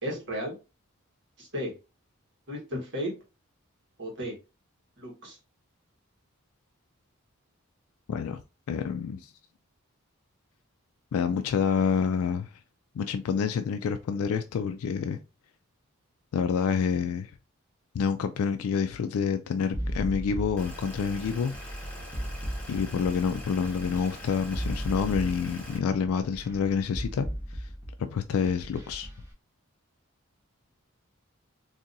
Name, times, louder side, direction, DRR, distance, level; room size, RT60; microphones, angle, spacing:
voice 1, 0.0-0.5 1.4-1.7 2.5-3.1 4.0-4.3 5.0-5.4, equal, 55° right, 1.3 m, -34 dB
voice 2, 8.1-8.4 8.7-9.3 11.1-12.5 13.0-15.2 16.3-17.3 17.9-21.5 22.7-27.3 27.5-27.7 28.1-29.1, left 6 dB, 80° left, 0.3 m, -28 dB
sound 1, 19.7-29.2, equal, 10° right, 1.0 m, -36 dB
sound 2, 20.6-25.8, equal, 5° left, 0.9 m, -42 dB
3.9 x 2.7 x 2.6 m
head